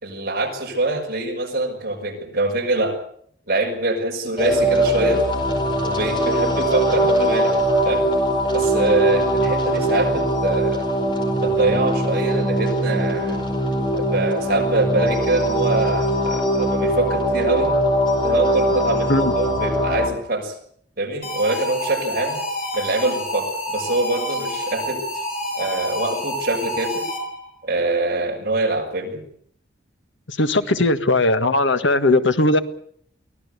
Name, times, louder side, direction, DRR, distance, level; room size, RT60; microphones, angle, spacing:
voice 1, 0.0-3.0 3.5-5.2 5.8-7.6 7.8-8.1 8.5-10.9 11.4-13.5 13.9-17.7 18.2-20.6 21.0-22.4 22.7-25.0 25.5-27.1 27.6-29.2, right 2 dB, 50° right, 1 dB, 6.3 m, -24 dB
sound 1, 4.4-20.1, right 1 dB, 25° left, 4.8 m, -21 dB
sound 2, 21.2-27.5, equal, 50° left, 5.9 m, -28 dB
voice 2, 30.3-32.6, left 2 dB, 75° left, 9 dB, 1.6 m, -18 dB
24.0 x 17.5 x 8.2 m, 0.63 s
head